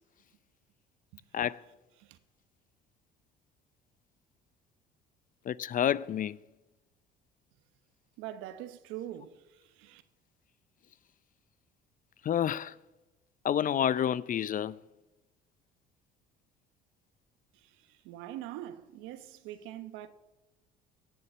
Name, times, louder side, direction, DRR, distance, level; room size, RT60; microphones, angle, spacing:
voice 1, 5.5-6.4 12.2-12.7 13.4-14.8, left 10 dB, 40° left, 0.5 m, -29 dB
voice 2, 8.2-10.0 17.5-20.1, right 12 dB, 75° right, 1.1 m, -43 dB
17.5 x 6.9 x 8.1 m
supercardioid pair, 70°, 21 cm